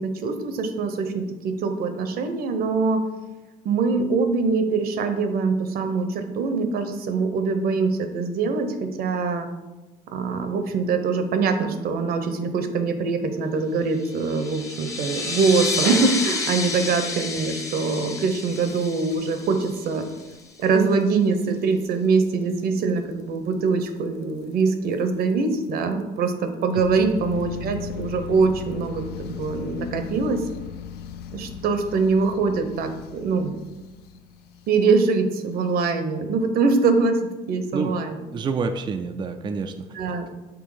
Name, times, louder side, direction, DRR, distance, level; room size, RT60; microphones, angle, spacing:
voice 1, 0.0-3.1 3.6-9.5 10.1-20.1 20.6-29.0 29.4-30.5 31.3-33.5 34.7-38.2 39.9-40.3, right 4 dB, 65° right, 7 dB, 0.8 m, -23 dB
sound 1, 14.0-20.3, left 3 dB, 20° left, 0.9 m, -30 dB
sound 2, 18.5-19.6 20.0-20.2 20.6-20.8 21.1-21.2 21.4-21.5 22.1-22.2 23.0-23.1 23.5-23.6 24.9-25.0 25.6-25.7 26.8-35.1, left 8 dB, 70° left, 0.4 m, -37 dB
voice 2, 38.3-39.9, right 4 dB, 25° right, 7 dB, 0.3 m, -28 dB
6.2 x 3.3 x 4.8 m, 1.1 s
cardioid pair, 110°, 17 cm